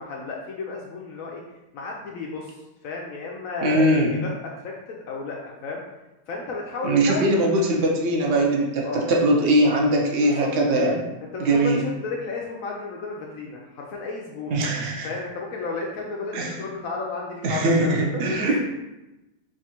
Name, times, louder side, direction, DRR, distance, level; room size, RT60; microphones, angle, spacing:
voice 1, 0.0-1.4 1.7-5.8 6.3-7.2 8.8-9.1 10.2-10.5 11.2-14.6 15.0-18.6, left 3 dB, 75° left, -1 dB, 0.7 m, -33 dB
voice 2, 3.6-4.2 6.8-11.1 11.4-11.8 14.5-15.1 16.3-16.5 17.4-18.6, right 1 dB, 65° right, -1 dB, 0.6 m, -21 dB
3.5 x 2.5 x 4.2 m, 0.99 s
omnidirectional pair, 2.0 m